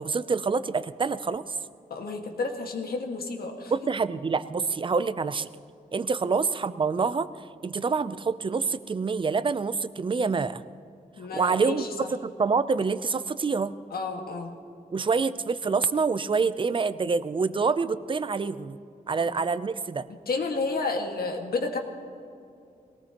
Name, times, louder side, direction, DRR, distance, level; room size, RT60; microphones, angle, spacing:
voice 1, 0.0-1.6 3.7-5.5 5.9-7.3 7.6-10.6 11.3-13.7 14.9-18.8 19.1-20.1, right 4 dB, 35° right, 14 dB, 0.5 m, -26 dB
voice 2, 1.9-3.7 6.2-6.4 11.2-11.9 13.9-14.5 19.2-19.3 20.3-21.8, left 3 dB, 75° left, 3 dB, 1.8 m, -31 dB
22.0 x 18.0 x 3.0 m, 2.6 s
wide cardioid pair, 135°, 16 cm